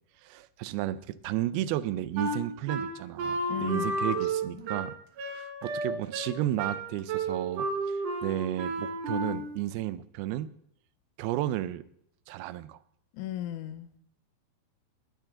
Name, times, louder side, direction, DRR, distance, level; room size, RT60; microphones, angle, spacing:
voice 1, 0.2-5.0 5.2-10.5 11.2-11.8 12.3-12.8, right 13 dB, 85° right, 16 dB, 2.6 m, -33 dB
Wind instrument woodwind instrument, 2.2-9.6, right 2 dB, 60° right, 2.9 m, -32 dB
voice 2, 3.5-3.9 4.5-4.6 13.1-14.0, left 12 dB, 70° left, 10 dB, 1.9 m, -36 dB
20.5 x 9.4 x 3.8 m, 0.68 s
omnidirectional pair, 4.4 m